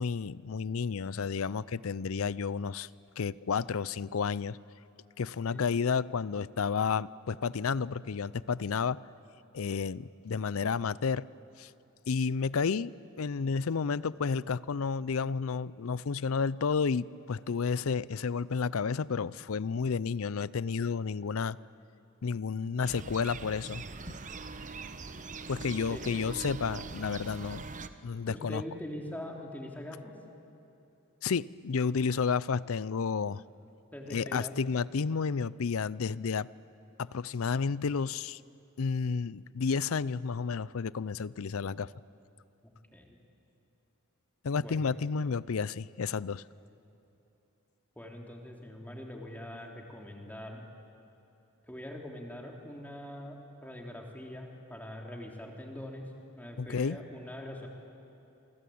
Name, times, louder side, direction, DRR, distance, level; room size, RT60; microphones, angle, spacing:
voice 1, 0.0-2.9 3.2-4.6 5.2-9.0 9.5-11.3 11.6-11.7 12.1-21.6 22.2-24.1 25.5-27.7 28.0-28.6 31.2-33.4 34.1-36.5 37.0-38.4 38.8-41.9 44.4-46.4 56.6-57.0, left 5 dB, 65° left, 20 dB, 0.5 m, -31 dB
sound 1, 22.8-27.9, right 4 dB, 35° right, 1.0 m, -42 dB
voice 2, 25.9-26.3 28.3-30.1 33.9-34.5 42.6-43.2 44.6-44.9 48.0-50.7 51.7-56.0 56.4-57.7, left 1 dB, 10° left, 0 dB, 3.2 m, -43 dB
28.5 x 23.5 x 8.6 m, 2.9 s
head